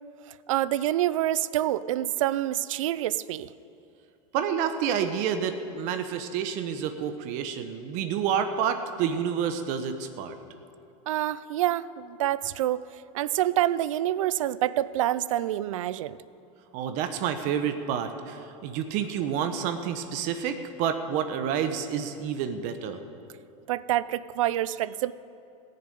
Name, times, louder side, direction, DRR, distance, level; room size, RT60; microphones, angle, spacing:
voice 1, 0.5-3.5 11.1-12.9 13.1-16.2 23.7-25.1, right 13 dB, 85° right, 17 dB, 0.5 m, -27 dB
voice 2, 4.3-10.4 16.7-23.0, right 8 dB, 50° right, 8 dB, 0.9 m, -29 dB
15.0 x 6.8 x 9.2 m, 2.6 s
supercardioid pair, 135°, 16 cm